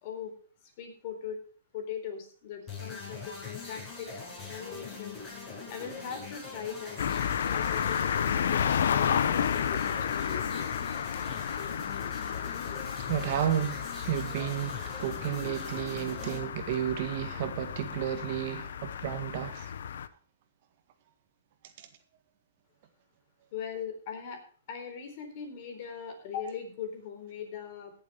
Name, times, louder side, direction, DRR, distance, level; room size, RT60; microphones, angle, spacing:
voice 1, 0.0-0.3 0.8-1.4 1.7-4.1 4.5-10.7 23.5-24.4 24.7-27.9, left 7 dB, 45° left, 4.1 m, -40 dB
sound 1, 2.7-16.4, left 4 dB, 20° left, 7.8 m, -42 dB
sound 2, 7.0-20.1, left 8 dB, 75° left, 0.8 m, -32 dB
voice 2, 13.1-19.7 21.8-21.9, right 10 dB, 50° right, 1.7 m, -32 dB
17.0 x 7.4 x 5.0 m
hypercardioid pair, 150°, 0 cm